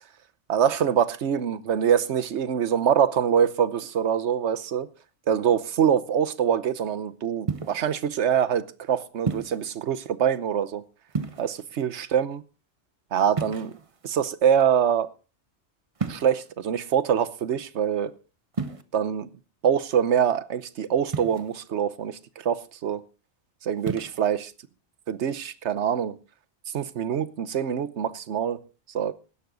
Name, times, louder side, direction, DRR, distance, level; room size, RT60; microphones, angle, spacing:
voice 1, 0.5-4.9 5.3-10.8 11.4-12.4 13.1-13.7 14.0-15.1 16.1-18.1 18.9-19.3 19.6-23.0 23.6-24.5 25.1-26.2 26.7-28.6 28.9-29.1, right 8 dB, 70° right, 1.1 m, -24 dB
sound 1, 7.5-7.9 9.3-9.7 11.1-11.7 13.3-14.1 16.0-16.5 18.5-18.8 21.1-21.6 23.8-24.2, right 4 dB, 30° right, 0.9 m, -31 dB
16.0 x 12.0 x 3.9 m
omnidirectional pair, 1.2 m